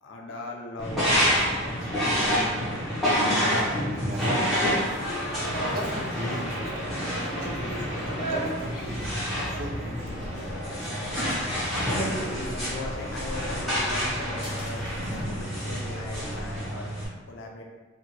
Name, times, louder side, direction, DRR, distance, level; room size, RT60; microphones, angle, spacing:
voice 1, 0.0-1.1 1.5-2.1 11.2-14.9 15.1-16.9 17.3-17.6, left 1 dB, 70° left, 1 dB, 0.5 m, -38 dB
sound 1, 0.8-17.0, equal, ahead, 0.7 m, -28 dB
voice 2, 3.5-4.8 5.7-10.2, equal, 50° right, -1 dB, 0.5 m, -37 dB
sound 2, 4.6-15.3, right 1 dB, 40° left, 0.8 m, -40 dB
2.8 x 2.3 x 2.8 m, 1.3 s
head